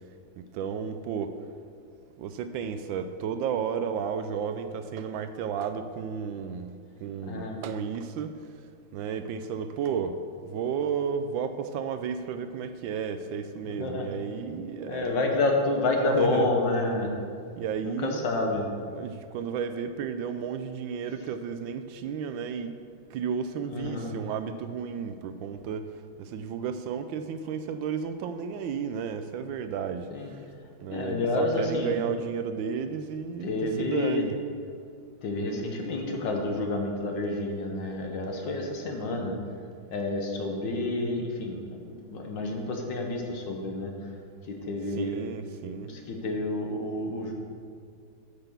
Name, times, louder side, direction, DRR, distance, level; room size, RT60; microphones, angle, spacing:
voice 1, 0.4-1.4 2.2-6.7 7.0-8.4 8.9-15.2 16.1-16.5 17.6-18.3 18.9-22.7 23.1-25.9 26.2-30.1 30.8-33.5 33.8-34.4 45.0-45.9, right 7 dB, 75° right, 9 dB, 1.2 m, -33 dB
voice 2, 7.3-7.6 13.6-14.1 14.9-17.1 17.8-18.7 23.7-24.2 30.1-30.3 30.9-32.0 33.4-34.2 35.2-39.4 39.9-43.9 44.4-45.2 45.8-47.3, left 2 dB, 65° left, 2 dB, 1.7 m, -29 dB
8.9 x 5.9 x 6.8 m, 2.2 s
omnidirectional pair, 2.2 m